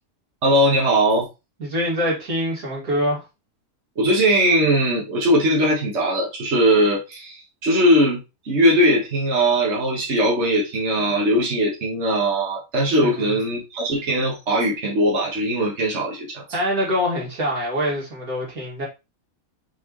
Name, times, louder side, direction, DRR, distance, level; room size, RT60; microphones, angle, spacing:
voice 1, 0.4-1.3 4.0-16.4, equal, 50° right, 2.0 m, -20 dB
voice 2, 1.6-3.3 13.0-13.3 16.5-18.9, equal, 80° right, 3.1 m, -24 dB
6.1 x 4.8 x 3.2 m
omnidirectional pair, 1.5 m